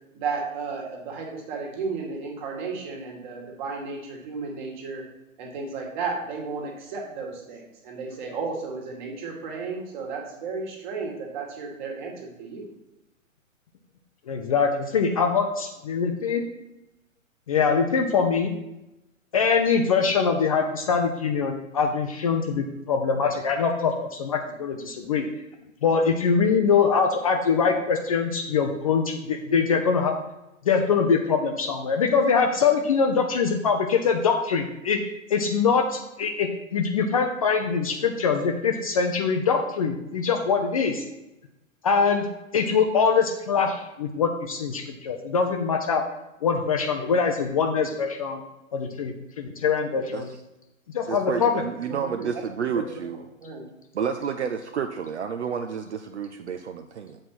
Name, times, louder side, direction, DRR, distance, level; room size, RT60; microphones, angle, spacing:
voice 1, 0.1-5.0 5.4-12.7 51.9-52.3 52.9-53.0 53.4-53.7, right 4 dB, 35° right, 1 dB, 1.9 m, -33 dB
voice 2, 14.3-16.4 17.5-18.5 19.3-25.2 25.8-30.2 30.7-35.0 35.3-41.0 41.8-42.3 42.5-46.0 46.4-48.4 48.7-50.3 50.9-51.6, left 5 dB, 25° left, 3 dB, 0.5 m, -23 dB
voice 3, 51.0-53.2 53.9-57.2, right 7 dB, 55° right, 7 dB, 0.6 m, -30 dB
7.6 x 4.4 x 5.9 m, 0.94 s
figure-of-eight pair, 120°, 40 cm